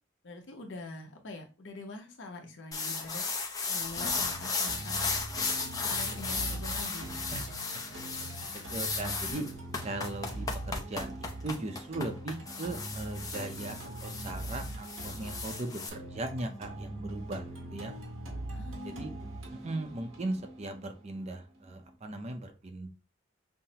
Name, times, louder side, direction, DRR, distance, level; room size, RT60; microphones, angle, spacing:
voice 1, 0.2-3.2 3.7-5.0 5.8-7.2 18.5-19.2, left 2 dB, 65° left, 3 dB, 0.9 m, -44 dB
sound 1, 2.7-15.9, left 4 dB, 20° left, 0.6 m, -35 dB
sound 2, 4.0-21.9, right 1 dB, 85° right, 1.3 m, -42 dB
voice 2, 8.2-9.4 9.8-17.4 17.7-17.9 18.8-19.1 19.6-22.9, right 2 dB, 35° right, 5 dB, 0.6 m, -38 dB
5.6 x 2.1 x 2.8 m, 0.30 s
head